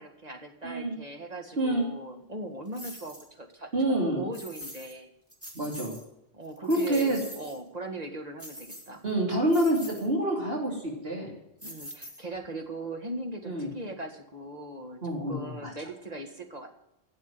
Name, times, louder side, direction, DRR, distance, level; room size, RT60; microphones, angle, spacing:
voice 1, 0.0-5.1 6.3-9.0 11.6-16.8, right 2 dB, 40° right, 3 dB, 2.0 m, -39 dB
voice 2, 0.6-0.9 1.6-1.9 3.7-4.2 5.5-6.0 6.7-7.2 9.0-11.4 13.4-13.7 15.0-15.7, right 1 dB, 70° right, -2 dB, 3.2 m, -27 dB
sound 1, 2.7-3.3 4.3-5.0 5.3-6.0 6.4-7.6 8.4-9.1 9.5-10.1 11.6-12.5, equal, 15° right, 2.6 m, -44 dB
12.0 x 7.9 x 8.9 m, 0.85 s
omnidirectional pair, 1.1 m